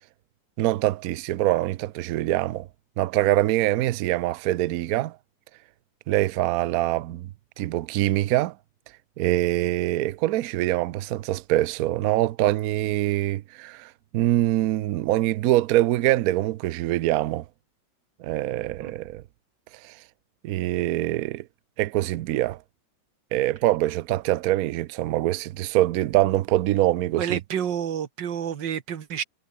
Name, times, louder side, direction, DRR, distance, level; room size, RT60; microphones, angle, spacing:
voice 1, 0.6-2.7 3.0-5.2 6.1-7.3 7.6-8.6 9.2-17.4 18.2-19.2 19.8-20.0 20.4-21.5 21.8-22.6 23.3-27.4, right 15 dB, 80° right, 0.8 m, -24 dB
voice 2, 27.2-29.2, right 9 dB, 65° right, 2.0 m, -29 dB
omnidirectional pair, 2.2 m